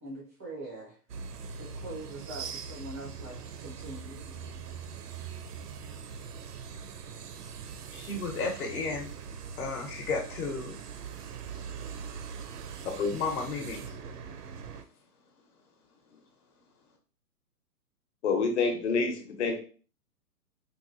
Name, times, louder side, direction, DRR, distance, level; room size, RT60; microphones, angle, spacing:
voice 1, 0.0-1.0 1.6-4.2, right 2 dB, 10° right, -4 dB, 0.4 m, -43 dB
sound 1, 1.1-14.8, right 6 dB, 75° right, 0.7 m, -42 dB
voice 2, 7.9-9.1 9.6-10.8 13.1-14.0, left 4 dB, 65° left, 0 dB, 1.1 m, -33 dB
voice 3, 18.2-19.6, left 4 dB, 45° left, 4 dB, 1.1 m, -27 dB
4.6 x 2.7 x 2.6 m, 0.39 s
hypercardioid pair, 140°, 47 cm